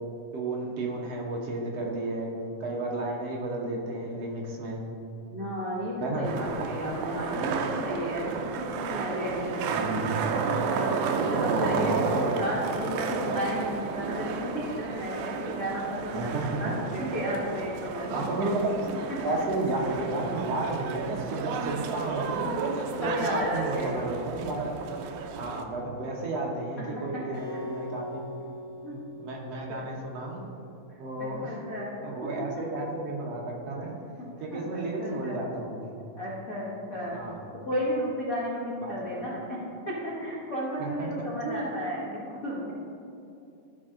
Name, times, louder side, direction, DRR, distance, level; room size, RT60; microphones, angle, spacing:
voice 1, 0.3-2.3 2.6-4.8 6.0-6.3 9.6-10.1 11.5-12.0 16.1-17.1 18.1-18.8 19.2-22.4 23.0-24.6 25.4-28.2 28.9-30.4 31.0-31.6 32.0-33.9 34.4-35.9 37.1-37.5 38.8-39.0 40.8-41.7, right 2 dB, 65° right, -2 dB, 1.7 m, -32 dB
voice 2, 5.3-10.0 10.8-18.1 19.1-19.6 22.4-22.5 23.0-23.9 26.8-26.9 27.1-27.6 28.8-29.0 29.7-29.8 31.2-32.0 32.4-32.5 34.5-35.4 36.2-37.2 37.6-39.6 39.8-42.7, equal, 55° left, -8 dB, 0.9 m, -33 dB
sound 1, 6.2-25.6, right 5 dB, 80° right, 1.8 m, -32 dB
Acoustic guitar, 27.3-30.6, left 1 dB, 80° left, 3.6 m, -42 dB
13.5 x 5.4 x 3.8 m, 2.6 s
omnidirectional pair, 4.0 m